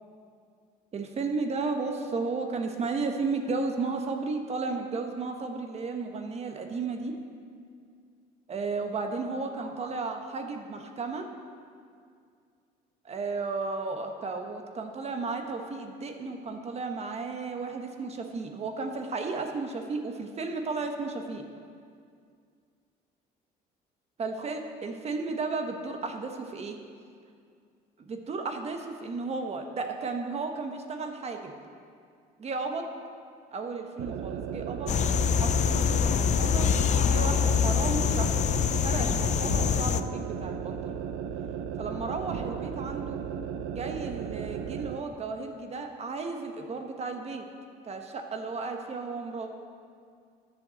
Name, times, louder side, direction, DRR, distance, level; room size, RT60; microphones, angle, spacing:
voice 1, 0.9-7.1 8.5-11.3 13.0-21.4 24.2-26.8 28.0-31.5 32.4-32.9 33.5-34.9 35.3-36.7 37.0-38.4 38.8-41.0 41.8-43.2 43.7-47.4 47.8-49.5, right 4 dB, 40° right, 4 dB, 1.2 m, -34 dB
sound 1, 34.0-45.0, right 8 dB, 85° right, 0.6 m, -35 dB
sound 2, 34.9-40.0, left 7 dB, 45° left, 0.5 m, -25 dB
11.0 x 7.1 x 7.6 m, 2.2 s
cardioid pair, 110°, 17 cm